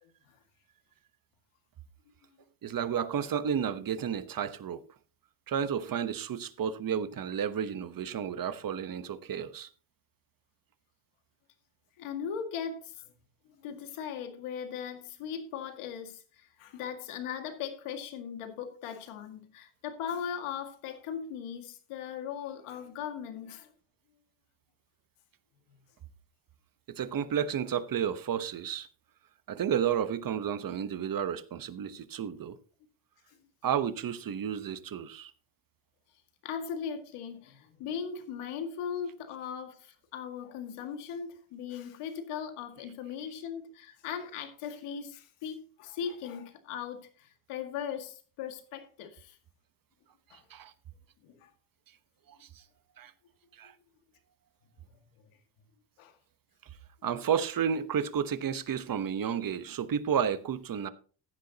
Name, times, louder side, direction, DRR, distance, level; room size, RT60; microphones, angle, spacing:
voice 1, 2.6-4.8 5.5-9.7 26.9-28.9 29.5-32.6 33.6-35.3 50.5-50.7 52.3-52.6 53.0-53.1 53.5-53.7 57.0-60.9, right 8 dB, 40° right, 1.1 m, -32 dB
voice 2, 12.0-13.1 13.5-23.7 33.3-33.4 36.4-49.4 50.3-50.4 51.2-51.5 56.0-56.1, left 7 dB, 85° left, 2.1 m, -39 dB
15.0 x 10.5 x 2.9 m
cardioid pair, 100°, 50 cm